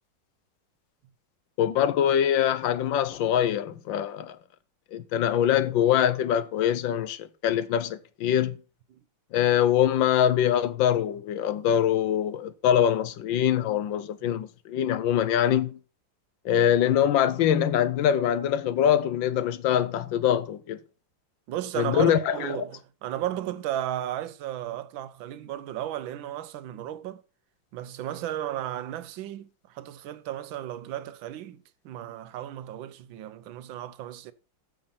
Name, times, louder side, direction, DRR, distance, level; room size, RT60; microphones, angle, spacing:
voice 1, 1.6-4.4 4.9-8.6 9.3-15.8 16.4-20.8 21.8-22.6, left 10 dB, 85° left, 1.5 m, -24 dB
voice 2, 21.5-27.2 27.7-29.5 29.7-34.3, right 12 dB, 85° right, 1.5 m, -34 dB
8.3 x 7.1 x 5.7 m
omnidirectional pair, 2.1 m